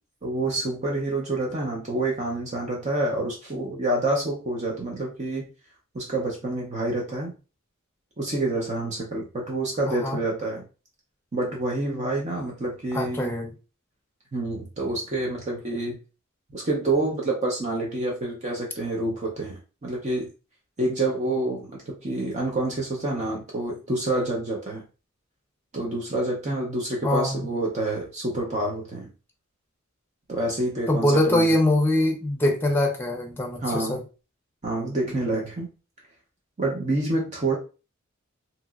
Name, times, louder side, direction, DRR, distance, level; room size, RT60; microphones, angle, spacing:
voice 1, 0.2-5.5 5.9-7.3 8.2-10.7 11.3-13.3 14.3-16.0 16.5-20.3 20.8-24.8 25.7-29.1 30.3-31.6 33.6-34.0 34.6-35.7 36.6-37.6, right 2 dB, 35° right, 0.6 m, -28 dB
voice 2, 9.9-10.2 12.9-13.5 27.0-27.4 30.9-34.0, left 1 dB, 10° left, 0.6 m, -23 dB
2.9 x 2.8 x 2.3 m
head